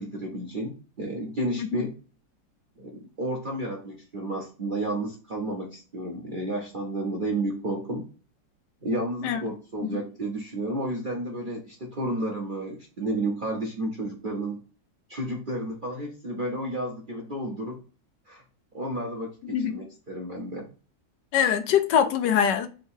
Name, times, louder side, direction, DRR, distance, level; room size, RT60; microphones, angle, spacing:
voice 1, 0.0-1.9 2.8-8.0 8.8-14.6 15.1-17.8 18.3-18.4 18.7-20.7, right 1 dB, 45° right, 0.6 m, -31 dB
voice 2, 19.4-19.7 21.3-22.7, left 8 dB, 80° left, 1.2 m, -23 dB
3.8 x 2.8 x 4.3 m
omnidirectional pair, 1.9 m